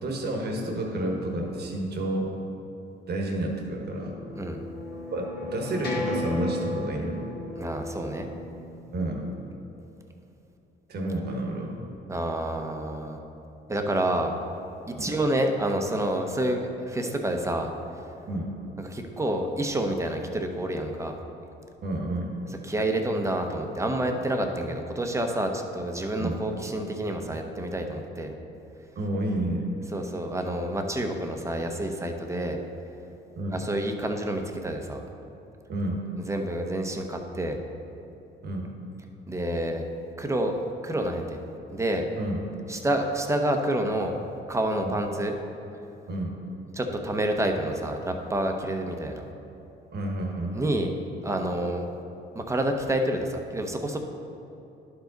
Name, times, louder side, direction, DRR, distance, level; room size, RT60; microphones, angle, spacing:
voice 1, 0.0-2.3 3.1-4.2 5.1-7.3 8.9-9.3 10.9-11.8 14.9-15.2 18.3-18.5 21.8-22.3 26.2-26.4 28.9-29.7 33.4-33.6 35.7-36.0 38.4-38.8 42.2-42.4 44.8-44.9 46.1-46.4 49.9-50.7, right 1 dB, 55° right, 1 dB, 1.3 m, -30 dB
sound 1, 3.6-9.6, left 2 dB, 55° left, 1.4 m, -35 dB
voice 2, 7.6-8.3 12.1-13.2 13.7-14.3 14.9-17.7 18.8-21.2 22.6-28.3 29.9-32.6 33.5-35.0 36.3-37.6 39.3-39.8 40.2-41.4 41.7-42.0 42.7-44.1 44.5-45.3 46.7-49.2 50.5-50.9 51.2-51.8 52.3-54.0, right 1 dB, 15° right, 4 dB, 0.8 m, -28 dB
11.5 x 5.0 x 3.9 m, 2.9 s
cardioid pair, 90°, 20 cm